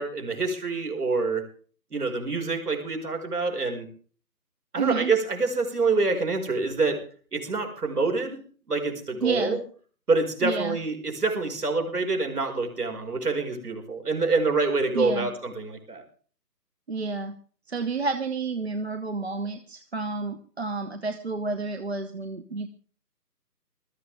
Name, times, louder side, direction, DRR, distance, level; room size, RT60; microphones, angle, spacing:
voice 1, 0.0-1.4 1.9-3.9 4.7-7.0 7.3-8.4 8.7-9.6 10.1-16.0, right 3 dB, 65° right, 3 dB, 5.3 m, -26 dB
voice 2, 4.8-5.1 9.2-9.6 10.4-10.8 14.9-15.3 16.9-17.3 17.7-22.7, right 4 dB, 40° right, 7 dB, 1.1 m, -30 dB
20.5 x 14.0 x 3.5 m, 0.42 s
figure-of-eight pair, 165°, 50 cm